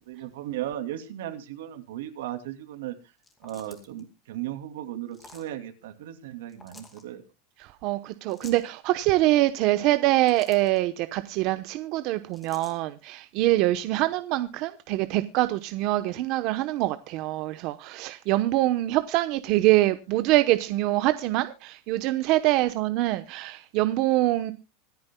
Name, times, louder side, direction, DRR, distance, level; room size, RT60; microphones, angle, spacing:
voice 1, 0.0-3.0 3.4-7.3 22.6-22.7, right 12 dB, 85° right, 2.7 m, -36 dB
sound 1, 3.2-4.0 5.1-5.5 6.5-7.0 8.3-8.7 9.9-10.8 12.3-12.8, left 3 dB, 10° left, 2.5 m, -50 dB
voice 2, 7.8-24.5, right 16 dB, 45° right, 0.9 m, -24 dB
25.5 x 9.5 x 2.2 m
supercardioid pair, 170°, 0 cm